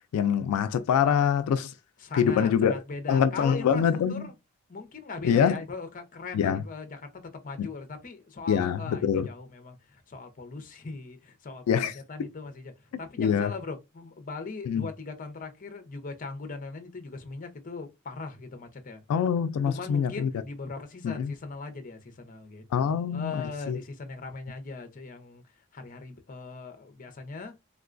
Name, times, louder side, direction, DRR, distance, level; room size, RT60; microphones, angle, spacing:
voice 1, 0.1-1.7 2.1-2.7 3.1-4.3 5.2-5.6 6.3-6.6 7.6-7.7 8.5-9.3 11.7-11.9 13.2-13.5 14.7-14.9 19.1-20.3 21.0-21.3 22.7-23.8, left 7 dB, 90° left, 0.3 m, -25 dB
voice 2, 2.0-4.3 4.7-12.7 13.0-19.0 19.7-25.4 25.7-27.5, left 4 dB, 40° left, 0.6 m, -40 dB
3.7 x 2.2 x 2.4 m
head